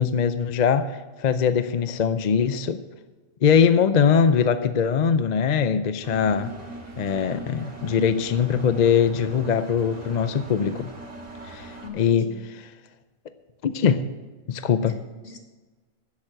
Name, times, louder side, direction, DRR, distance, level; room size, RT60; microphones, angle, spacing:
voice 1, 0.0-2.8 3.4-6.5 7.0-10.9 11.5-12.3 13.6-14.0 14.5-15.0, left 7 dB, 50° left, 11 dB, 0.5 m, -22 dB
Engine, 6.0-11.9, right 2 dB, 70° right, 2.4 m, -39 dB
voice 2, 11.8-12.4 14.0-14.1 14.8-15.4, left 6 dB, 75° left, 4 dB, 1.9 m, -41 dB
12.0 x 7.3 x 7.6 m, 1.3 s
omnidirectional pair, 1.3 m